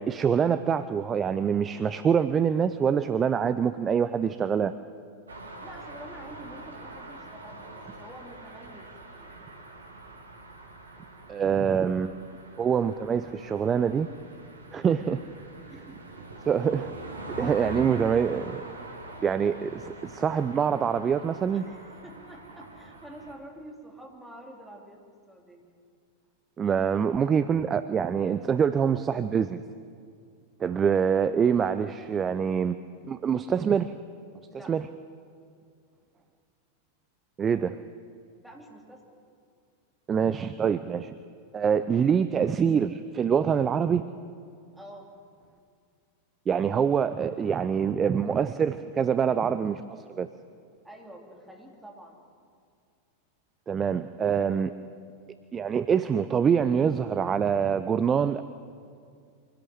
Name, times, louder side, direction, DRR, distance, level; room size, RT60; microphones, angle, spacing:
voice 1, 0.0-4.7 11.3-12.1 12.6-14.1 14.7-15.2 16.5-16.9 17.3-18.6 19.2-21.6 26.6-29.6 30.6-32.8 33.1-33.9 34.7-34.9 37.4-37.8 40.1-41.1 41.5-44.0 46.5-49.8 50.2-50.3 53.7-54.7 55.5-58.4, right 7 dB, 20° right, 13 dB, 0.6 m, -25 dB
sound 1, 5.3-23.3, right 1 dB, 75° right, 2.4 m, -44 dB
voice 2, 5.6-9.5 15.7-16.0 17.5-17.6 21.5-25.7 34.5-34.7 38.4-39.2 44.7-45.1 50.8-52.2, right 1 dB, 5° right, 0 dB, 3.4 m, -47 dB
24.5 x 16.5 x 7.8 m, 2.3 s
figure-of-eight pair, 90°, 0 cm